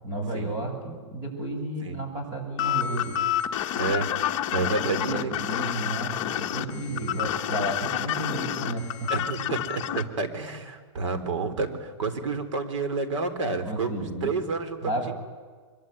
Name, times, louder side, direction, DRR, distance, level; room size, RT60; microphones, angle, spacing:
voice 1, 0.0-3.2 4.5-9.3 13.6-14.4 14.8-15.1, right 1 dB, 25° right, 2 dB, 7.6 m, -32 dB
sound 1, 2.6-10.0, left 12 dB, 30° left, 1.3 m, -28 dB
voice 2, 3.7-5.3 6.8-7.3 9.1-15.1, right 4 dB, 75° right, 9 dB, 4.0 m, -30 dB
24.5 x 23.5 x 9.3 m, 1.5 s
supercardioid pair, 170°, 16 cm